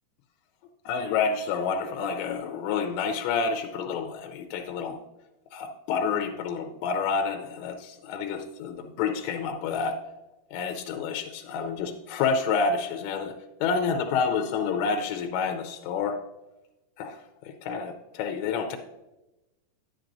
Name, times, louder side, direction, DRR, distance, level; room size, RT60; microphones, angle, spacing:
voice 1, 0.9-5.0 5.5-10.0 10.5-13.4 13.6-16.2 17.0-17.2 17.4-18.8, left 5 dB, 80° left, 5 dB, 2.8 m, -29 dB
10.5 x 10.0 x 2.6 m, 0.98 s
omnidirectional pair, 5.1 m